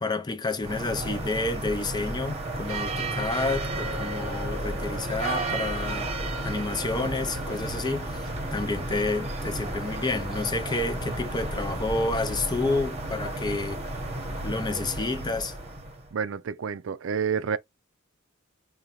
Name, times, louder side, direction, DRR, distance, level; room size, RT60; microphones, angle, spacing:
voice 1, 0.0-6.1 6.4-8.2 8.5-13.8 14.4-15.5, left 3 dB, 20° left, 0.5 m, -29 dB
sound 1, 0.6-16.1, right 2 dB, 30° right, 0.9 m, -32 dB
voice 2, 16.1-17.6, right 6 dB, 65° right, 0.4 m, -29 dB
5.0 x 2.2 x 2.9 m
head